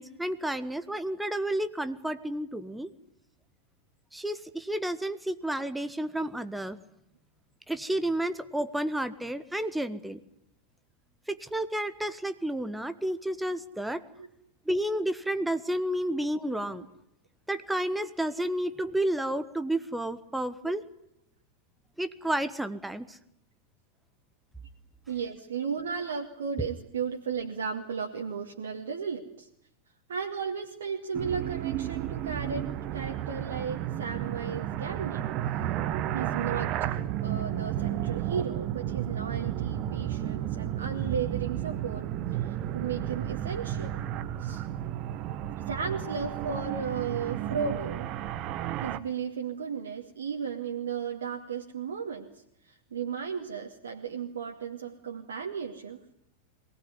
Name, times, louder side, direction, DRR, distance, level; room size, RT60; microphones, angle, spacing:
voice 1, 0.0-2.9 4.1-6.8 7.7-10.2 11.3-14.0 14.6-16.8 17.5-20.8 22.0-23.2, right 1 dB, 5° right, 11 dB, 1.6 m, -31 dB
voice 2, 25.1-29.5 30.1-35.2 36.1-44.0 44.4-44.7 45.7-48.1 48.8-56.0, right 6 dB, 65° right, 0 dB, 2.3 m, -35 dB
sound 1, 31.1-49.0, right 12 dB, 40° right, 1.4 m, -32 dB
23.5 x 19.0 x 9.8 m, 0.79 s
figure-of-eight pair, 90°, 0 cm